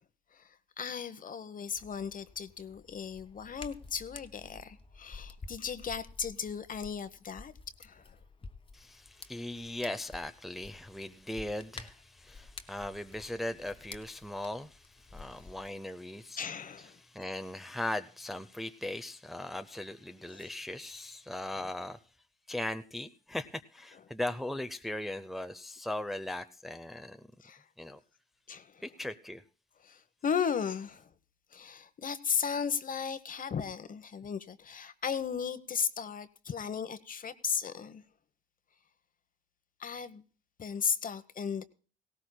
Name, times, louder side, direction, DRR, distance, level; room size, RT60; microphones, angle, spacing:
voice 1, 0.8-7.5 7.8-8.1 16.4-17.0 20.3-20.4 27.4-27.6 28.5-28.8 29.8-31.1 31.5-38.0 39.8-40.2 40.6-41.6, left 7 dB, 45° left, 1.0 m, -36 dB
Hands, 1.7-15.7, left 3 dB, 25° left, 1.2 m, -51 dB
voice 2, 8.7-22.0 22.5-27.3 27.8-28.0 28.8-29.4, left 1 dB, ahead, 0.6 m, -39 dB
18.0 x 17.5 x 2.2 m
cardioid pair, 90°, 20 cm